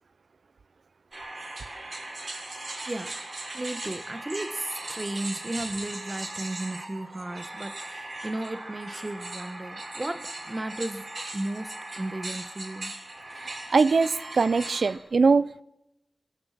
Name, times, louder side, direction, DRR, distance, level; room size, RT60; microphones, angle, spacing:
sound 1, 1.1-15.0, right 2 dB, 50° right, 7.4 m, -38 dB
voice 1, 3.5-11.1 11.3-12.9, right 1 dB, 25° right, 1.3 m, -34 dB
voice 2, 13.7-15.6, right 4 dB, 65° right, 0.8 m, -22 dB
26.5 x 24.0 x 5.9 m
wide cardioid pair, 115°, 0 cm